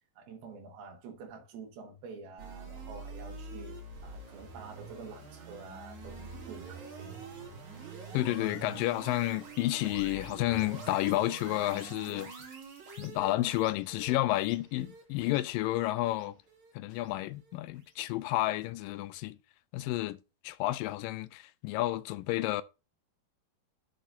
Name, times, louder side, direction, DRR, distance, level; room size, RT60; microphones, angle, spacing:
voice 1, 0.2-3.8 4.0-7.2, right 4 dB, 85° right, 3.5 m, -48 dB
sound 1, 2.4-17.6, right 4 dB, 55° right, 3.8 m, -46 dB
voice 2, 8.1-12.3 13.0-16.4 16.8-19.4 19.7-20.2 20.4-22.6, left 16 dB, 80° left, 2.1 m, -31 dB
11.5 x 6.8 x 2.7 m
omnidirectional pair, 4.2 m